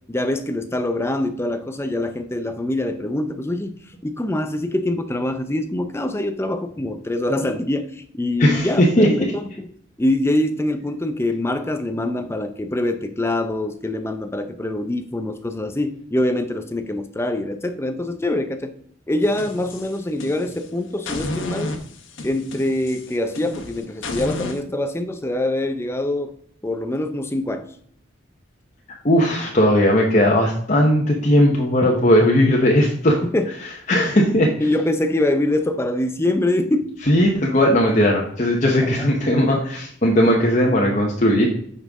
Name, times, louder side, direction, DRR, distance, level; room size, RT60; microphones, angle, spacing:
voice 1, 0.1-9.3 9.6-9.7 10.0-18.7 19.1-21.8 22.2-26.3 26.6-27.7 32.4-32.5 33.2-33.5 34.0-34.1 34.6-36.9 38.8-39.1, left 1 dB, 15° left, 8 dB, 0.5 m, -24 dB
voice 2, 8.4-9.3 29.0-33.2 33.9-34.5 37.1-41.5, equal, 40° left, -1 dB, 1.1 m, -17 dB
sound 1, 19.2-20.7 21.1-24.6, left 2 dB, 70° left, 1.3 m, -32 dB
9.0 x 5.5 x 3.6 m, 0.64 s
head